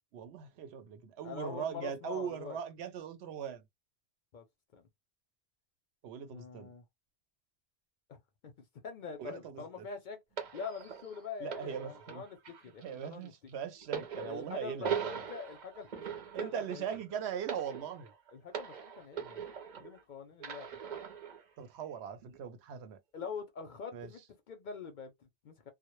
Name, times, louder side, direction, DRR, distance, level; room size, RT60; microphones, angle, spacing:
voice 1, 0.1-3.6 6.0-6.7 9.2-9.8 11.4-12.2 12.8-14.9 16.3-18.1 21.6-23.0 23.9-24.1, right 8 dB, 80° right, 0.8 m, -40 dB
voice 2, 1.2-2.6 4.3-4.4 4.7-4.9 6.3-6.8 8.1-8.2 8.4-8.5 8.8-10.2 10.5-13.3 14.2-16.8 18.3-19.4 19.8-20.7 23.1-25.7, left 6 dB, 60° left, 0.6 m, -44 dB
sound 1, 10.4-20.0 20.4-21.4 22.2-22.4, right 7 dB, 50° right, 0.6 m, -41 dB
2.1 x 2.1 x 2.9 m
omnidirectional pair, 1.1 m